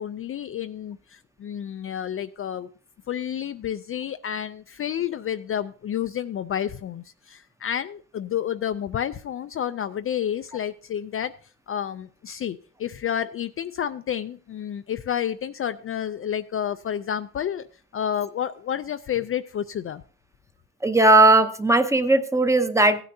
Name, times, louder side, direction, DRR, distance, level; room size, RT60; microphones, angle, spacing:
voice 1, 0.0-2.7 3.1-11.3 11.7-17.7 17.9-20.0, left 9 dB, 40° left, 10 dB, 0.4 m, -30 dB
voice 2, 20.8-23.0, right 2 dB, 10° right, 9 dB, 0.8 m, -17 dB
16.5 x 9.5 x 2.7 m, 0.40 s
cardioid pair, 110°, 35 cm